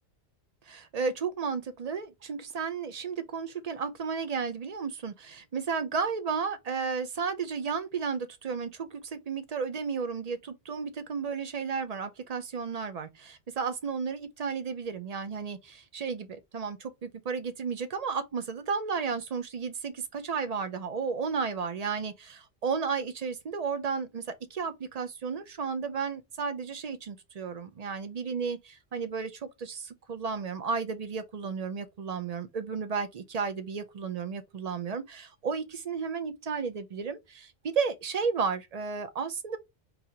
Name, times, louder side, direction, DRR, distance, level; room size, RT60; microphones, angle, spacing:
voice 1, 0.9-24.2 24.5-39.6, right 5 dB, 45° right, 0.6 m, -33 dB
3.9 x 2.8 x 2.8 m
omnidirectional pair, 1.1 m